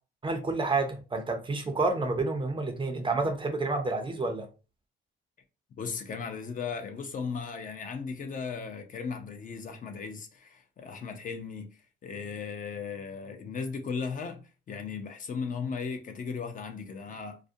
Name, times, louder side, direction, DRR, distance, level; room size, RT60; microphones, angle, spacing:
voice 1, 0.2-4.5, right 3 dB, 25° right, 0.5 m, -29 dB
voice 2, 5.8-11.7 12.0-17.4, left 5 dB, 40° left, 0.5 m, -36 dB
2.4 x 2.1 x 2.6 m
cardioid pair, 90°, 20 cm